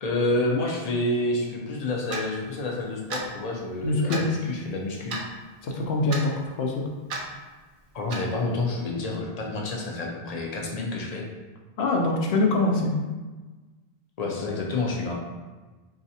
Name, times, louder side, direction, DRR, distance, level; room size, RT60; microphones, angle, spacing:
voice 1, 0.0-5.2 7.9-11.3 14.2-15.1, left 2 dB, 45° left, -1 dB, 0.6 m, -28 dB
Clock, 2.1-2.2 3.1-3.3 4.1-4.3 5.1-5.3 6.1-6.2 7.1-7.2 8.1-8.3, right 2 dB, 60° right, 0.7 m, -32 dB
voice 2, 3.8-4.3 5.6-6.8 11.8-12.9, left 2 dB, 75° left, 0 dB, 0.8 m, -24 dB
4.0 x 2.4 x 2.7 m, 1.3 s
omnidirectional pair, 1.1 m